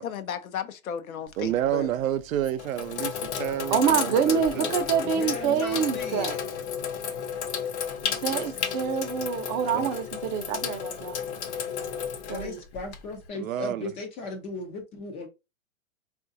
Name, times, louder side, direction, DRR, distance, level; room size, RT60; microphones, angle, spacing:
voice 1, 0.0-1.9 8.0-8.7, left 8 dB, 85° left, 0.7 m, -36 dB
Sink (filling or washing), 1.3-1.7 2.3-13.3, left 7 dB, 55° left, 0.9 m, -32 dB
voice 2, 1.4-4.8 8.3-8.5 9.7-9.9 13.3-13.9, right 12 dB, 75° right, 0.6 m, -30 dB
voice 3, 3.7-6.3 8.2-11.2 12.3-12.6, right 8 dB, 35° right, 0.6 m, -26 dB
voice 4, 5.0-6.4 12.3-15.3, left 2 dB, 15° left, 0.4 m, -37 dB
3.7 x 2.5 x 2.6 m
hypercardioid pair, 125°, 41 cm